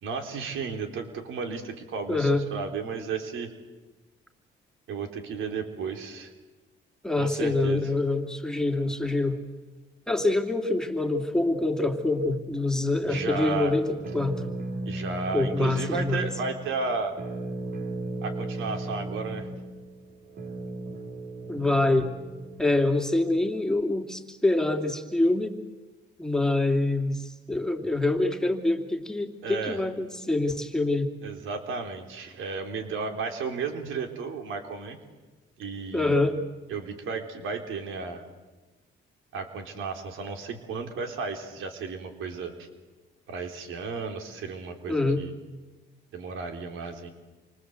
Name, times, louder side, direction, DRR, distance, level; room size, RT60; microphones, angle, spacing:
voice 1, 0.0-3.5 4.9-6.3 7.2-7.8 13.1-13.7 14.9-17.1 18.2-19.5 29.4-29.8 31.2-35.0 35.6-36.2 36.7-38.2 39.3-42.7 43.3-45.3 46.1-47.1, right 5 dB, 85° right, 5 dB, 3.8 m, -33 dB
voice 2, 2.1-2.4 7.0-9.4 10.1-14.4 15.3-16.3 21.5-22.1 22.6-25.6 26.2-31.1 35.9-36.4 44.9-45.2, left 2 dB, 5° left, 4 dB, 2.9 m, -25 dB
sound 1, 13.1-23.0, right 2 dB, 55° right, 3.6 m, -36 dB
28.5 x 25.0 x 8.1 m, 1.2 s
cardioid pair, 90°, 20 cm